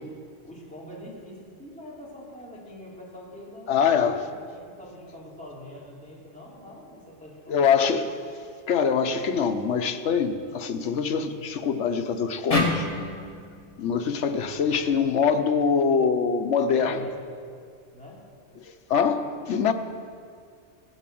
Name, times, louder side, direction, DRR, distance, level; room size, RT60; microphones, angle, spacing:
voice 1, 0.4-3.9 4.2-7.7 16.7-17.2 17.9-18.2, left 1 dB, 5° left, -6 dB, 3.2 m, -44 dB
voice 2, 3.7-4.2 7.5-8.1 8.7-12.9 13.8-17.0 18.6-19.7, left 6 dB, 80° left, 8 dB, 1.1 m, -24 dB
sound 1, 12.5-15.7, left 2 dB, 30° left, 1.5 m, -31 dB
15.0 x 8.1 x 7.6 m, 2.3 s
omnidirectional pair, 1.2 m